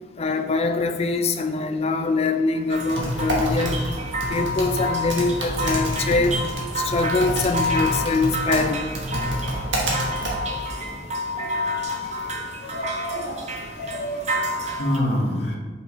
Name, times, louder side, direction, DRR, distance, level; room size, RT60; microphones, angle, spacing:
voice 1, 0.2-3.8 4.3-6.3 6.8-8.9, left 3 dB, 35° left, 7 dB, 0.4 m, -23 dB
sound 1, 2.7-15.0, equal, 40° right, 0.6 m, -29 dB
Typing, 2.7-10.9, right 1 dB, 85° right, 1.3 m, -28 dB
voice 2, 9.1-9.7 12.0-15.6, left 1 dB, 70° left, -2 dB, 1.2 m, -29 dB
5.8 x 5.4 x 3.1 m, 1.4 s
head